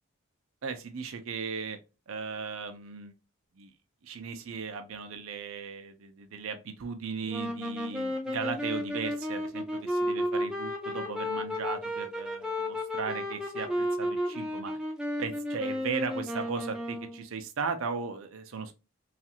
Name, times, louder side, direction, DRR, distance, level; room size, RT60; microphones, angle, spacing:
voice 1, 0.6-1.8 2.1-3.1 3.6-3.7 4.0-14.7 15.2-18.7, right 5 dB, 70° right, 0.5 m, -37 dB
sound 1, 7.3-17.3, left 1 dB, 5° right, 0.4 m, -33 dB
3.1 x 2.4 x 2.8 m
head